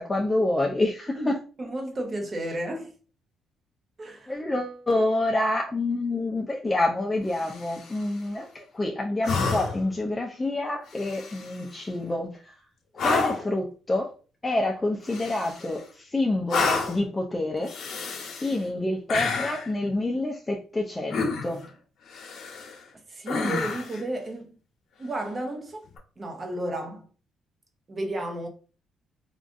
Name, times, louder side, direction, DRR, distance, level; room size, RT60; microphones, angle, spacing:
voice 1, 0.0-1.4 4.3-12.5 13.0-14.1 14.4-17.7 18.4-21.7, left 2 dB, 20° left, 0.5 m, -27 dB
voice 2, 1.6-2.9 4.0-4.4 23.1-24.6 25.0-25.9 26.2-27.0 27.9-28.5, right 1 dB, 35° right, 0.8 m, -32 dB
sound 1, 7.3-8.0 9.2-9.9 10.9-11.6 13.0-13.5 15.1-15.8 16.5-17.1 17.6-18.6 19.1-19.7 21.1-21.7 22.1-22.8 23.3-24.0 25.9-26.0, left 4 dB, 65° left, 0.9 m, -29 dB
3.6 x 2.4 x 2.5 m
cardioid pair, 90°, 0 cm